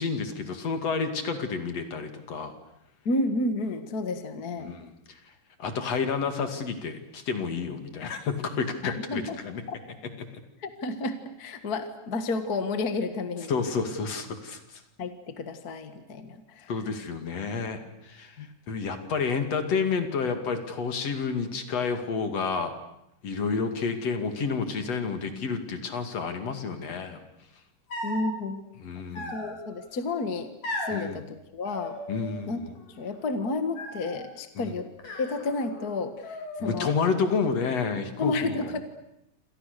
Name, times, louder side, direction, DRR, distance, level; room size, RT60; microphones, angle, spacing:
voice 1, 0.0-2.5 4.6-4.9 5.6-9.6 10.2-10.4 13.5-14.8 16.7-18.4 18.7-22.7 23.2-27.2 28.8-29.4 30.9-31.2 32.1-32.6 34.6-34.7 36.6-38.8, left 5 dB, 50° left, 7 dB, 3.3 m, -30 dB
voice 2, 3.0-4.7 8.8-9.4 10.6-13.5 15.0-16.7 18.4-18.5 28.0-28.6 29.2-30.5 30.9-32.0 32.5-32.6 33.0-34.9 35.2-36.9 38.2-38.8, left 2 dB, 35° left, 8 dB, 1.7 m, -31 dB
sound 1, 27.9-28.3 29.1-29.8 30.6-31.0 31.6-32.5 32.8-33.3 33.8-34.3 35.0-35.9 36.2-37.0, left 1 dB, 80° left, 7.8 m, -37 dB
28.0 x 27.5 x 6.8 m, 0.81 s
omnidirectional pair, 3.8 m